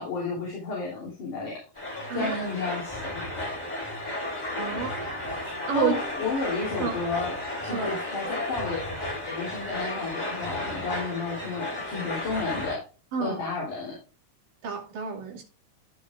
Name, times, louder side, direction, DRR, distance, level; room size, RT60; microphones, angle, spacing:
voice 1, 0.0-1.6 2.1-3.3 4.7-4.9 5.7-7.3 7.6-8.8 9.3-12.8 13.2-14.0, left 4 dB, 70° left, 4.7 m, -32 dB
sound 1, 1.8-12.8, left 1 dB, 10° left, 3.7 m, -33 dB
voice 2, 4.6-4.9 5.7-5.9 6.8-6.9 7.7-7.9 13.1-13.4 14.6-15.4, right 7 dB, 85° right, 4.1 m, -29 dB
14.5 x 6.4 x 2.4 m
omnidirectional pair, 3.7 m